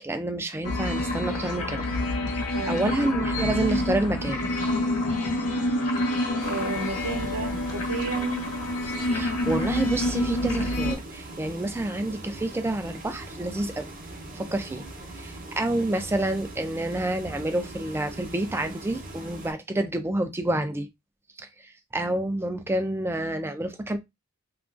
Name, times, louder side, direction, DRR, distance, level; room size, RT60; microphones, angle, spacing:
voice 1, 0.0-1.8 2.7-4.4 9.1-13.9 14.3-14.8 15.1-20.9 21.4-24.0, right 1 dB, 10° right, 0.3 m, -28 dB
sound 1, 0.6-10.9, left 1 dB, 85° left, 0.7 m, -27 dB
voice 2, 2.5-3.1 6.4-8.5, right 3 dB, 75° right, 0.7 m, -32 dB
sound 2, 6.4-19.5, right 2 dB, 40° right, 0.7 m, -41 dB
2.9 x 2.3 x 2.5 m
head